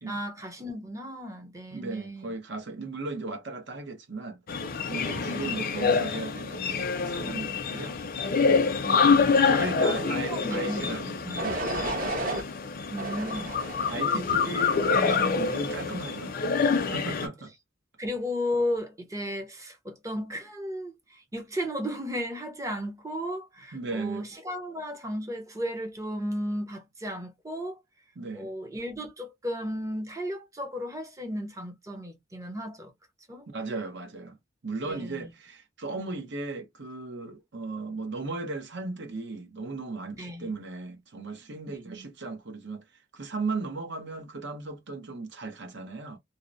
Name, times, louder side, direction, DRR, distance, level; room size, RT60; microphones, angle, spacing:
voice 1, 0.1-2.3 5.2-5.6 5.9-6.0 8.8-9.7 10.0-11.5 12.9-13.5 18.0-27.8 28.3-32.9 33.3-33.5 34.8-35.3 40.1-40.5 41.7-42.1, equal, 15° right, 0.6 m, -35 dB
voice 2, 1.7-4.4 4.9-8.0 8.4-8.6 9.3-11.6 13.2-13.3 13.9-16.4 16.7-17.5 23.7-24.2 28.2-28.5 33.5-34.4 34.6-42.8 43.1-46.2, right 3 dB, 65° right, 0.7 m, -36 dB
sound 1, 4.5-17.3, left 5 dB, 50° left, 0.5 m, -26 dB
sound 2, 10.4-10.8 11.4-12.4 13.0-14.0 14.6-15.0, right 1 dB, 45° right, 1.1 m, -33 dB
2.7 x 2.0 x 2.5 m
head